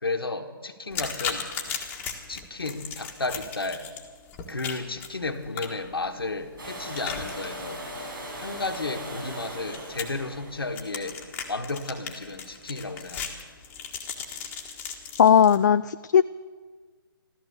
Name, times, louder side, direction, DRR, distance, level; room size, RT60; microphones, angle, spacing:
voice 1, 0.0-1.5 2.3-3.9 4.5-7.8 8.4-11.2 11.5-13.3, left 3 dB, 85° left, 4 dB, 1.5 m, -33 dB
sound 1, 0.9-15.6, left 6 dB, 15° left, 1.6 m, -38 dB
Domestic sounds home sounds, 6.6-12.4 14.3-14.4, equal, 65° right, 6.4 m, -39 dB
voice 2, 15.2-16.2, left 8 dB, 50° left, 12 dB, 0.3 m, -17 dB
14.5 x 14.0 x 6.9 m, 1.5 s
figure-of-eight pair, 140°, 12 cm